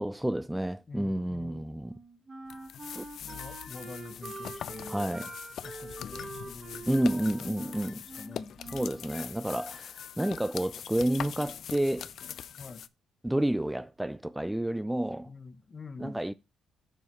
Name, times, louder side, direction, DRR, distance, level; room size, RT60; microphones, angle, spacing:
voice 1, 0.0-2.0 2.9-3.1 4.9-5.3 6.9-7.9 8.7-12.1 13.2-15.3 16.0-16.3, right 1 dB, 5° right, 0.3 m, -30 dB
voice 2, 0.9-1.7 3.2-5.3 5.6-8.6 12.6-12.8 15.2-16.2, left 4 dB, 35° left, 0.7 m, -46 dB
Wind instrument woodwind instrument, 1.8-9.1, right 3 dB, 35° right, 1.8 m, -45 dB
sound 1, 2.5-12.9, left 9 dB, 65° left, 0.4 m, -42 dB
6.8 x 4.6 x 4.3 m
cardioid pair, 90°, 0 cm